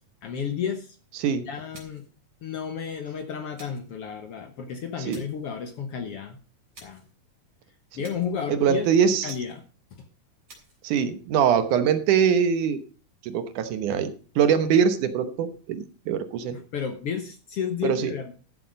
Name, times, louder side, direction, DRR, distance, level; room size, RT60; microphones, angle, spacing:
voice 1, 0.2-0.9 1.4-2.0 2.4-6.4 6.8-7.0 7.9-8.9 9.2-9.6 16.5-18.3, left 7 dB, 60° left, 7 dB, 1.7 m, -32 dB
voice 2, 1.2-1.5 5.1-5.2 8.5-9.4 10.8-12.8 13.2-16.6 17.8-18.1, right 7 dB, 75° right, 10 dB, 2.5 m, -23 dB
sound 1, 1.7-2.2 3.6-3.9 5.1-5.5 6.7-7.1 8.0-8.4 9.3-9.7 10.5-10.8, right 3 dB, 45° right, 4.4 m, -50 dB
13.0 x 7.8 x 5.2 m, 0.37 s
omnidirectional pair, 3.7 m